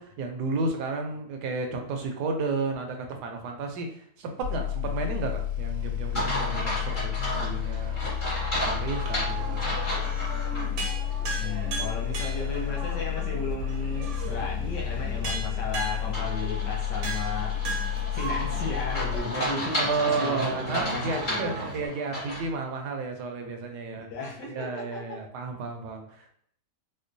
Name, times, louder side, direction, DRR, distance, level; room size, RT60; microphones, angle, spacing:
voice 1, 0.0-8.0 8.6-9.9 19.8-24.1 24.5-26.3, right 3 dB, 75° right, 4 dB, 1.1 m, -32 dB
sound 1, 4.4-19.2, left 10 dB, 70° left, 2.2 m, -31 dB
sound 2, 6.1-10.7 11.1-11.2 16.1-22.5, equal, 35° left, 1.0 m, -33 dB
sound 3, 8.9-21.9, right 3 dB, 55° right, 0.9 m, -38 dB
voice 2, 11.3-17.5 18.1-21.5 24.1-25.2, left 2 dB, 90° left, -3 dB, 1.6 m, -35 dB
4.3 x 2.2 x 2.6 m, 0.66 s
omnidirectional pair, 1.8 m